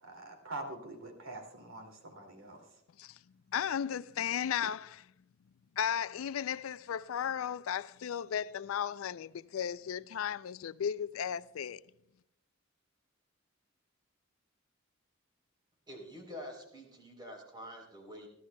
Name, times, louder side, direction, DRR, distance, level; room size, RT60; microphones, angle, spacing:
voice 1, 0.0-2.6, right 2 dB, 90° right, 2.5 m, -44 dB
voice 2, 3.5-5.1 5.8-11.8, left 8 dB, 90° left, 0.4 m, -35 dB
voice 3, 15.9-18.3, equal, 20° right, 3.5 m, -47 dB
29.5 x 11.5 x 2.2 m
head